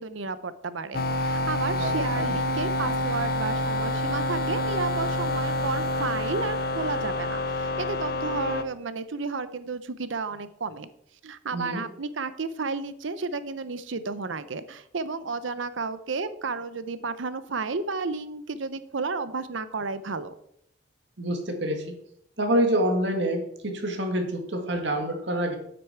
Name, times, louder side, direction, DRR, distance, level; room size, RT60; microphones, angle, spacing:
voice 1, 0.0-10.9 11.2-20.3, right 4 dB, 85° right, 14 dB, 0.7 m, -32 dB
sound 1, 0.9-8.6, left 1 dB, 50° left, 0.6 m, -27 dB
voice 2, 1.8-2.3 11.5-11.9 21.2-22.0 22.4-25.6, right 1 dB, 70° right, 4 dB, 2.0 m, -27 dB
8.8 x 8.5 x 4.6 m, 0.72 s
head